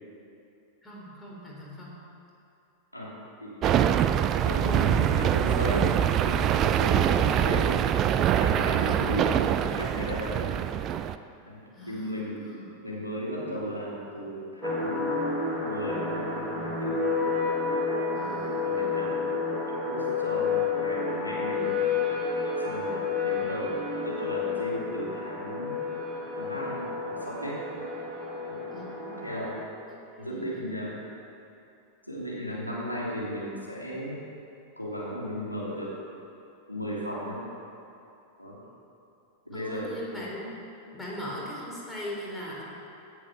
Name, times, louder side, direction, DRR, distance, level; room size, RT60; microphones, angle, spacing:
voice 1, 0.8-2.0 6.9-7.2 8.6-9.5 11.7-12.6 18.1-19.0 28.7-29.3 29.9-30.6 39.5-40.5 40.9-42.6, equal, 10° left, -4 dB, 3.8 m, -40 dB
voice 2, 3.4-3.8 4.4-5.9 6.2-7.8 8.3-10.5 11.5-12.4 12.8-15.1 15.6-17.0 18.2-18.4 18.6-19.3 19.9-21.7 22.6-23.7 24.0-25.7 26.4-27.8 28.5-28.6 29.2-29.5 30.2-30.9 32.1-34.2 34.8-35.9 36.7-37.4 38.4-38.6 39.4-40.2, equal, 90° left, -6 dB, 3.2 m, -35 dB
sound 1, 3.6-11.1, right 10 dB, 30° right, 0.5 m, -24 dB
sound 2, 14.6-29.6, left 4 dB, 10° right, 2.7 m, -30 dB
16.5 x 8.3 x 6.2 m, 2.7 s
figure-of-eight pair, 90°, 0 cm